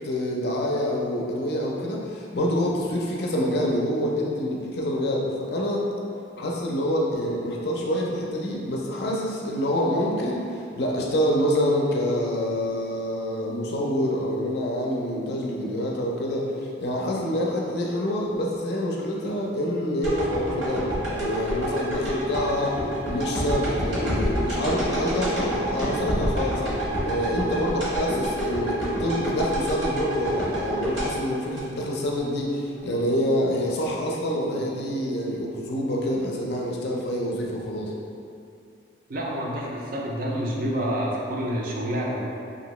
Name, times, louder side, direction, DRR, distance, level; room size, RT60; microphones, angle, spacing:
voice 1, 0.0-5.8 6.4-16.5 16.8-22.8 23.1-26.7 27.0-37.9, equal, 55° left, -2 dB, 0.4 m, -26 dB
sound 1, 20.0-32.2 32.6-32.7, right 1 dB, 80° right, 1.2 m, -27 dB
voice 2, 39.1-42.3, equal, 50° right, -3 dB, 0.4 m, -28 dB
2.8 x 2.6 x 3.0 m, 2.4 s
head